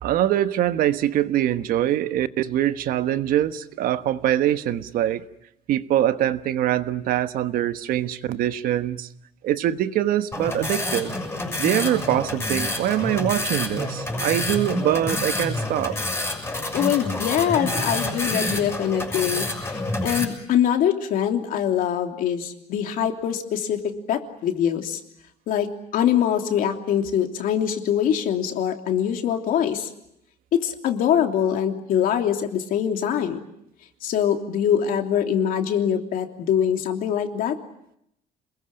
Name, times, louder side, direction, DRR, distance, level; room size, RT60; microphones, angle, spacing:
voice 1, 0.0-5.2 5.7-9.1 9.4-11.2 11.6-16.0, right 12 dB, 65° right, 11 dB, 1.3 m, -23 dB
sound 1, 10.3-20.2, left 2 dB, 15° left, 6.4 m, -28 dB
voice 2, 16.7-23.8 24.1-25.0 25.5-25.7 25.9-29.9 30.5-33.4 34.0-37.6, left 9 dB, 65° left, 4 dB, 3.1 m, -23 dB
28.0 x 21.5 x 8.8 m, 0.78 s
cardioid pair, 150°, 16 cm